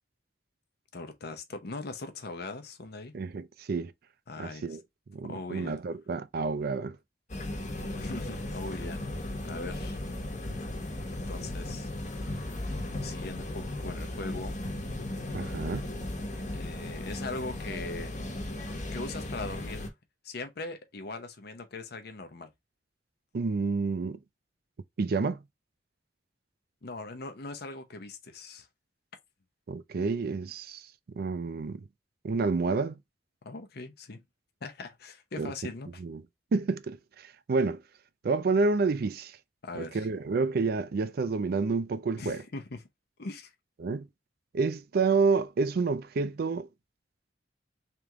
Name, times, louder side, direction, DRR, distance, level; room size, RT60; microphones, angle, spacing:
voice 1, 0.9-3.1 4.3-4.7 5.2-5.8 8.0-10.0 11.1-11.9 13.0-14.6 16.5-18.1 18.9-19.9 20.2-22.5 26.8-28.7 33.4-34.2 34.6-36.0 39.6-40.1 42.2-42.9 43.2-43.5, left 3 dB, 60° left, 0.8 m, -40 dB
voice 2, 3.1-3.9 4.4-4.8 5.1-7.0 15.3-15.9 23.3-24.2 25.0-25.4 29.7-30.8 31.1-31.8 32.2-33.0 35.4-35.5 36.0-36.2 36.5-37.8 38.2-39.4 39.8-42.4 43.8-44.1 44.5-46.7, right 4 dB, 55° right, 0.4 m, -29 dB
sound 1, 7.3-19.9, left 1 dB, 40° left, 1.1 m, -36 dB
3.4 x 3.0 x 3.5 m
head